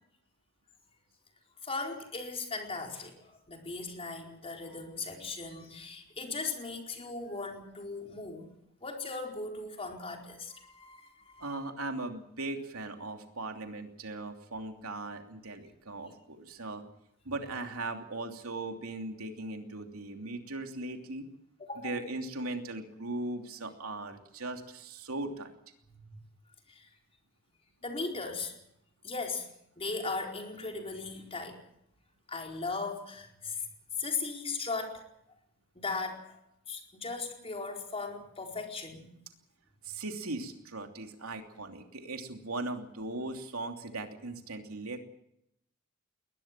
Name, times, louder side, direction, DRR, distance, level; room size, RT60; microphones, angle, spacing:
voice 1, 1.6-8.5 8.8-11.5 21.6-22.0 25.9-26.2 26.7-26.9 27.8-28.5 29.0-29.5 29.8-31.6 32.3-33.6 34.0-35.0 35.8-36.4 36.7-39.1, left 3 dB, 30° left, 2 dB, 4.6 m, -38 dB
voice 2, 11.4-16.8 17.2-21.3 21.8-25.5 39.8-45.0, right 2 dB, 85° right, 4 dB, 3.0 m, -38 dB
22.0 x 19.5 x 7.6 m, 0.77 s
head